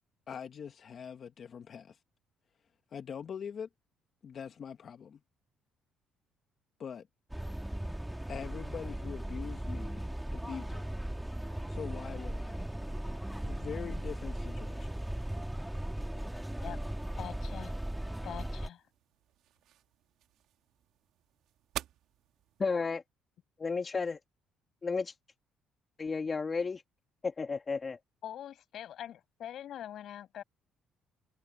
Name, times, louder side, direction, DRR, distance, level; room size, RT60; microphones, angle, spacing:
voice 1, 0.3-2.0 2.9-3.7 4.2-5.2 6.8-7.1 8.3-10.8 11.7-12.6 13.5-14.9, left 7 dB, 50° left, 1.4 m, -43 dB
sound 1, 7.3-18.7, right 1 dB, 5° right, 2.1 m, -37 dB
sound 2, 16.8-22.7, right 12 dB, 75° right, 2.1 m, -49 dB
voice 2, 17.2-17.8 18.2-18.8 28.2-30.4, left 11 dB, 65° left, 5.6 m, -43 dB
voice 3, 22.6-23.0 23.6-24.2 24.8-25.1 26.0-26.8 27.2-28.0, left 4 dB, 30° left, 1.6 m, -32 dB
cardioid pair, 95°, 0 cm